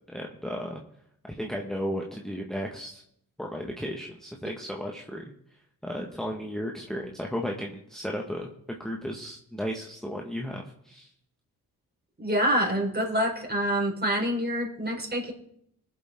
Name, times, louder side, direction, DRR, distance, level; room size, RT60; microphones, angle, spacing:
voice 1, 0.1-0.8 1.3-3.0 3.4-5.3 5.8-11.1, equal, ahead, 0 dB, 1.6 m, -34 dB
voice 2, 12.2-15.3, equal, 25° right, -1 dB, 4.7 m, -26 dB
21.5 x 7.8 x 3.7 m, 0.73 s
supercardioid pair, 50°, 36 cm